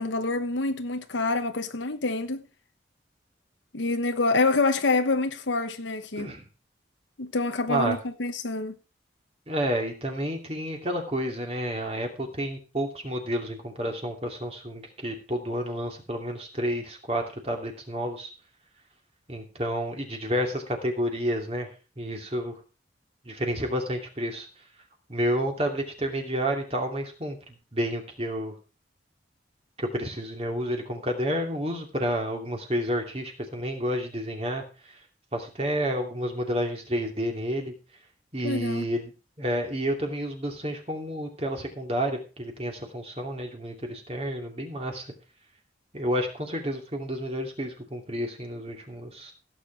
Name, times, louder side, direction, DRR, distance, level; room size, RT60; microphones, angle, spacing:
voice 1, 0.0-2.4 3.7-6.3 7.2-8.8 38.4-38.9, left 3 dB, 90° left, 1.1 m, -26 dB
voice 2, 9.5-18.3 19.3-21.7 22.0-22.5 23.2-24.7 25.1-28.5 29.8-35.0 35.3-37.7 38.3-39.1 39.4-45.1 45.9-49.3, equal, 35° right, 2.7 m, -30 dB
16.0 x 7.5 x 4.6 m
head